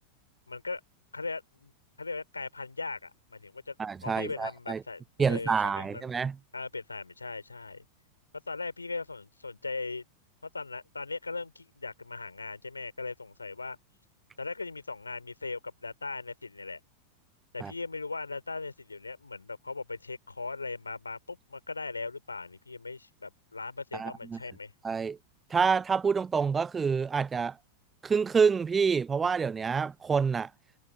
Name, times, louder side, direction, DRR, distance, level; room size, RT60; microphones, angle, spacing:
voice 1, 0.5-0.8 1.1-1.7 2.0-3.8 4.0-6.1 6.5-7.9 8.5-10.0 10.4-13.8 14.4-16.8 17.5-24.7, left 3 dB, 80° left, 5.3 m, -39 dB
voice 2, 3.8-4.8 5.2-6.4 17.6-17.7 23.9-24.4 24.8-25.2 25.5-27.6 28.0-30.5, right 5 dB, 15° right, 0.6 m, -27 dB
figure-of-eight pair, 90°, 0 cm